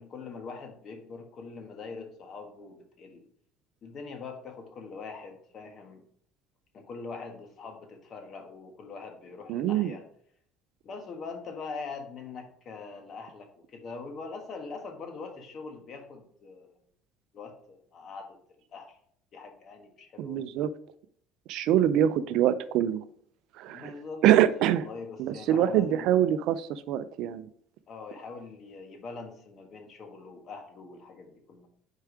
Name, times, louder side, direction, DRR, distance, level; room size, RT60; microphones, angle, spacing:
voice 1, 0.0-3.3 3.8-6.0 6.7-10.0 10.8-16.7 17.3-18.4 18.7-19.0 19.3-20.4 23.7-24.2 24.6-26.1 27.9-31.7, left 4 dB, 45° left, 4 dB, 1.4 m, -43 dB
voice 2, 9.5-9.9 20.2-20.7 21.5-23.0 23.6-23.9 24.2-24.9 25.2-27.5, right 11 dB, 65° right, 14 dB, 0.4 m, -24 dB
4.9 x 4.5 x 4.7 m, 0.64 s
supercardioid pair, 100°, 0 cm